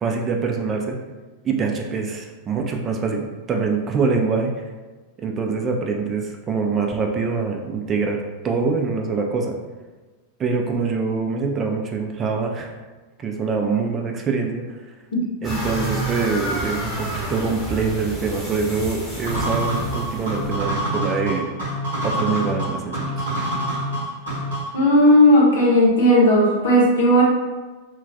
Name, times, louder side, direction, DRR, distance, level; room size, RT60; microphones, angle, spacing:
voice 1, 0.0-1.0 1.4-4.5 5.2-8.2 8.4-9.6 10.4-12.8 13.2-14.6 15.4-21.5 22.0-23.3, right 4 dB, 25° right, 2 dB, 0.3 m, -24 dB
sound 1, 15.4-20.6, right 1 dB, 5° right, 0.8 m, -30 dB
sound 2, 19.3-24.8, right 1 dB, 65° right, 0.8 m, -26 dB
voice 2, 24.7-27.2, equal, 60° left, -4 dB, 0.7 m, -15 dB
2.2 x 2.1 x 2.6 m, 1.3 s
figure-of-eight pair, 90°, 0 cm